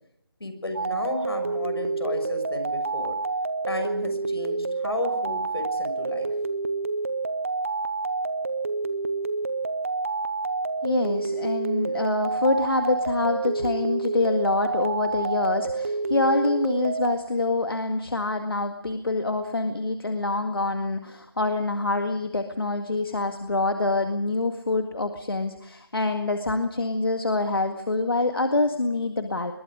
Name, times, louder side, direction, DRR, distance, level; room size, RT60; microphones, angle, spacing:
voice 1, 0.4-3.1 3.7-6.3, left 1 dB, 85° left, 7 dB, 6.5 m, -33 dB
sound 1, 0.7-17.2, right 3 dB, 35° right, 0.8 m, -28 dB
voice 2, 10.8-29.5, left 2 dB, 70° left, 6 dB, 2.0 m, -26 dB
23.5 x 22.0 x 5.1 m, 0.75 s
figure-of-eight pair, 175°, 13 cm